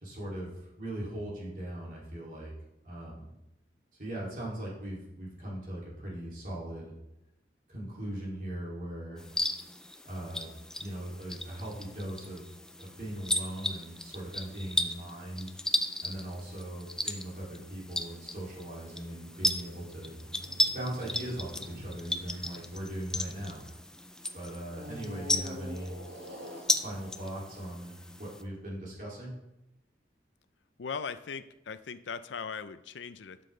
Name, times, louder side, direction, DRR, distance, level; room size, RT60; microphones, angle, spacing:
voice 1, 0.0-2.5 2.8-3.3 4.0-6.9 7.7-9.2 10.0-10.5 10.8-12.5 12.8-15.5 16.0-20.1 20.7-23.6 24.3-25.9 26.7-29.4, right 1 dB, 45° right, -5 dB, 2.8 m, -39 dB
sound 1, 9.2-28.4, left 1 dB, 5° left, 0.3 m, -36 dB
sound 2, 19.2-23.9 24.7-28.1, equal, 80° right, 1.7 m, -47 dB
voice 2, 30.8-33.4, left 5 dB, 90° left, 12 dB, 0.5 m, -39 dB
11.5 x 6.8 x 3.3 m, 0.91 s
head